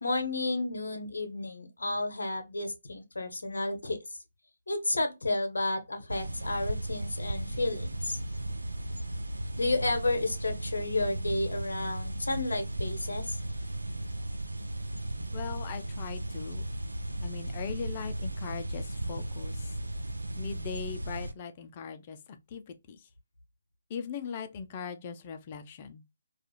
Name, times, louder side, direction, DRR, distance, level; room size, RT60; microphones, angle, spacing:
voice 1, 0.0-4.0 4.7-8.2 9.6-13.4, left 2 dB, 75° left, 0.7 m, -31 dB
sound 1, 6.1-21.3, right 1 dB, 90° right, 0.4 m, -36 dB
voice 2, 15.3-16.6 17.2-19.7 20.4-22.2 22.5-23.0 23.9-26.0, left 6 dB, 35° left, 0.4 m, -40 dB
2.4 x 2.4 x 2.7 m
figure-of-eight pair, 145°, 0 cm